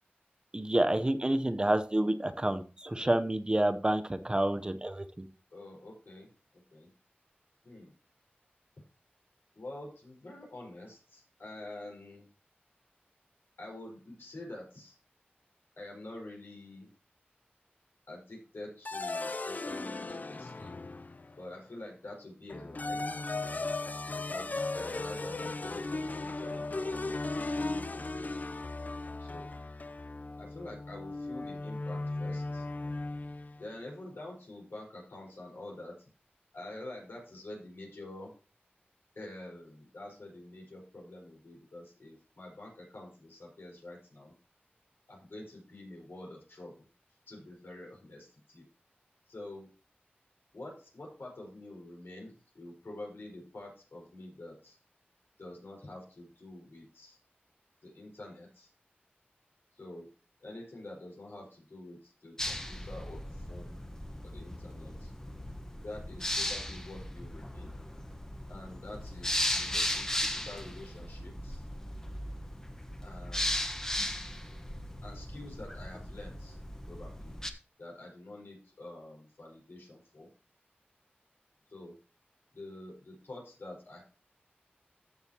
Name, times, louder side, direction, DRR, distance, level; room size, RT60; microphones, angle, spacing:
voice 1, 0.5-5.3, right 1 dB, 25° right, 10 dB, 0.7 m, -29 dB
voice 2, 5.5-6.9 7.6-7.9 9.5-12.3 13.6-15.0 15.8-16.9 18.1-20.7 21.4-23.0 24.1-28.6 29.2-29.6 30.4-32.7 33.6-36.1 36.5-38.3 39.1-44.3 45.1-46.9 47.3-48.6 49.3-49.7 50.5-54.8 55.4-57.2 57.8-58.7 59.8-60.1 60.4-63.8 64.2-65.1 65.8-67.7 68.5-71.6 73.0-73.8 75.0-76.6 76.9-77.3 77.8-80.3 81.7-81.9 82.5-84.0, left 1 dB, 80° left, 0 dB, 4.5 m, -47 dB
sound 1, 18.8-21.4 22.5-33.6, left 2 dB, 45° left, 0.4 m, -37 dB
sound 2, 62.4-77.5, left 1 dB, 15° left, 1.1 m, -37 dB
14.0 x 6.3 x 2.9 m, 0.36 s
wide cardioid pair, 80°, 4 cm